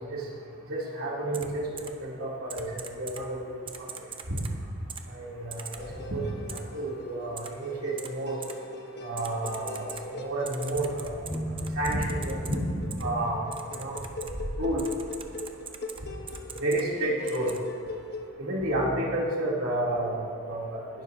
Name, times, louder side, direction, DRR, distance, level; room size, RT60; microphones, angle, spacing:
voice 1, 0.7-3.5 5.1-8.3 9.0-9.8 10.2-11.3 11.7-12.6 13.0-14.0 14.6-14.8 16.6-17.5 18.4-20.8, right 1 dB, 85° right, -5 dB, 3.0 m, -30 dB
Typing, 1.3-1.5 1.8-1.9 2.5-3.2 3.7-4.5 4.9-5.0 5.5-5.8 6.5-6.6 7.4-7.5 8.0-8.1 8.4-8.5 9.2-10.0 10.5-12.6 12.9-13.0 13.5-14.3 14.8-16.0 16.3-16.8 17.3-17.6, right 7 dB, 25° right, 0.7 m, -40 dB
sound 1, 5.8-18.3, left 2 dB, 50° left, 1.1 m, -41 dB
sound 2, 11.2-14.7 15.1-15.3, equal, 15° left, 1.2 m, -36 dB
20.0 x 11.5 x 2.7 m, 2.3 s
head